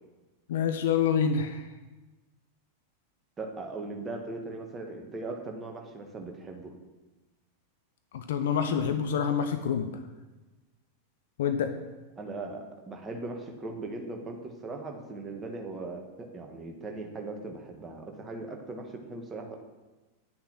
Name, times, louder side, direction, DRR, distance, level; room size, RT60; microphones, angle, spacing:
voice 1, 0.5-1.7 8.1-10.0 11.4-11.7, left 7 dB, 60° left, 8 dB, 0.7 m, -27 dB
voice 2, 3.4-6.7 12.2-19.6, right 3 dB, 20° right, 3 dB, 1.6 m, -39 dB
10.0 x 6.5 x 6.1 m, 1.2 s
figure-of-eight pair, 90°, 0 cm